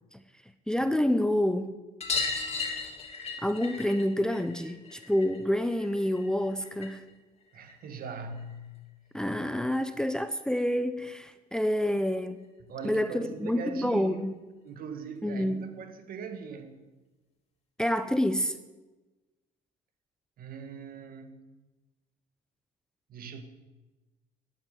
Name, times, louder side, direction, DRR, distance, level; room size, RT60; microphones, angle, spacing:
voice 1, 0.7-1.8 3.4-7.0 9.1-12.4 12.8-14.3 15.2-15.7 17.8-18.5, left 1 dB, 5° left, 0.7 m, -28 dB
sound 1, 2.0-7.1 7.4-8.5 9.9-10.0 10.2-10.3 10.6-10.7 12.0-12.1 12.4-12.5 12.8-12.9 14.1-14.2 15.0-15.1, left 4 dB, 35° left, 3.2 m, -36 dB
voice 2, 7.5-8.9 12.7-14.3 14.6-16.7 20.4-21.5 23.1-23.4, right 5 dB, 60° right, 1.9 m, -41 dB
11.5 x 8.9 x 9.3 m
cardioid pair, 110°, 17 cm